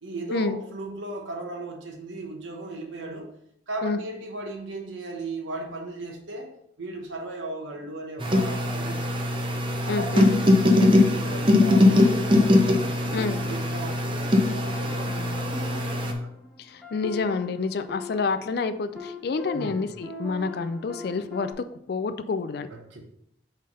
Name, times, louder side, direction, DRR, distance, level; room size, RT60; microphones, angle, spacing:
voice 1, 0.0-3.3 3.7-6.5 6.8-9.3 9.8-16.3 19.5-19.8 22.7-23.0, right 2 dB, 85° right, 1 dB, 1.0 m, -37 dB
sound 1, 8.2-16.1, left 2 dB, 25° right, 0.7 m, -21 dB
voice 2, 9.9-10.3 13.1-13.4 16.6-21.5 21.9-22.7, left 4 dB, 55° left, 10 dB, 0.4 m, -28 dB
sound 2, 13.2-14.4 14.9-21.5, left 3 dB, ahead, 1.7 m, -41 dB
5.6 x 3.4 x 5.3 m, 0.73 s
head